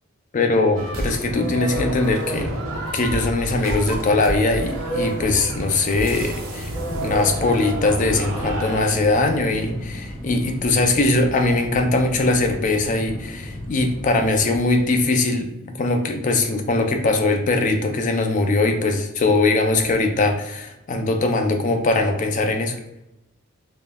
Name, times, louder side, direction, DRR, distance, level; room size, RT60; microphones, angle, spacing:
voice 1, 0.3-2.6 2.9-22.8, left 2 dB, 35° left, 5 dB, 0.3 m, -21 dB
sound 1, 0.8-9.1, right 1 dB, 70° right, 0.6 m, -29 dB
sound 2, 6.9-15.1, equal, 20° right, 0.7 m, -35 dB
3.4 x 2.0 x 2.2 m, 0.89 s
head